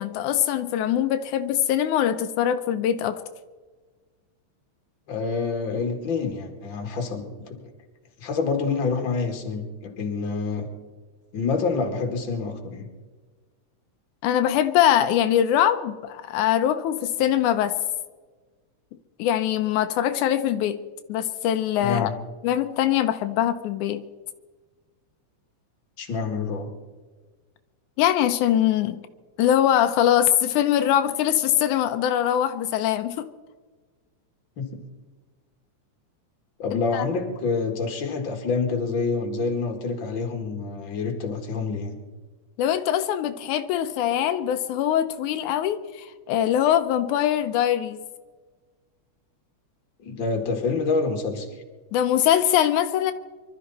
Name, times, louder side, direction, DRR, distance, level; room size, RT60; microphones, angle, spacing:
voice 1, 0.0-3.2 14.2-17.8 19.2-20.8 21.1-22.1 22.4-24.0 28.0-29.0 29.4-33.3 36.7-37.1 42.6-48.0 51.9-53.1, left 11 dB, 85° left, 9 dB, 2.2 m, -22 dB
voice 2, 5.1-7.6 8.2-10.7 11.3-12.9 21.8-22.2 26.0-26.7 34.6-34.8 36.6-42.0 50.0-51.6, left 4 dB, 45° left, 4 dB, 2.5 m, -27 dB
24.5 x 13.0 x 4.2 m, 1.4 s
omnidirectional pair, 3.4 m